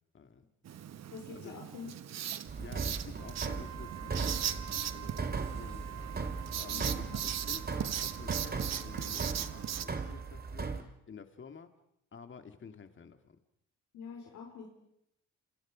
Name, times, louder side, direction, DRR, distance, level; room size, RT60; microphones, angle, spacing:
voice 1, 0.1-0.4 1.3-1.6 2.6-6.1 6.6-11.7 12.1-13.4, left 6 dB, 40° left, 8 dB, 2.4 m, -51 dB
Writing, 0.6-9.9, right 10 dB, 60° right, 1.3 m, -39 dB
voice 2, 1.1-1.9 6.7-6.9 13.9-14.7, left 5 dB, 75° left, 0 dB, 4.9 m, -45 dB
sound 1, 2.5-10.8, right 4 dB, 30° right, 2.4 m, -38 dB
Wind instrument woodwind instrument, 3.1-10.6, right 14 dB, 75° right, 2.4 m, -49 dB
28.5 x 27.5 x 5.2 m, 0.79 s
cardioid pair, 90°, 30 cm